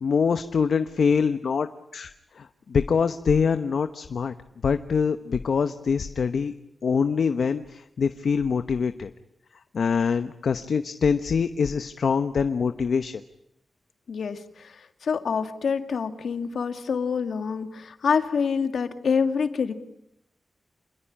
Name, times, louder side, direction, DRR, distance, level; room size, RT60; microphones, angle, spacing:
voice 1, 0.0-1.7 1.9-2.1 2.4-4.3 4.6-6.5 6.8-9.1 9.7-13.2, left 6 dB, 70° left, 10 dB, 1.0 m, -24 dB
voice 2, 14.1-19.7, left 6 dB, 90° left, 8 dB, 2.1 m, -26 dB
27.0 x 21.0 x 10.0 m, 0.81 s
wide cardioid pair, 175°, 0 cm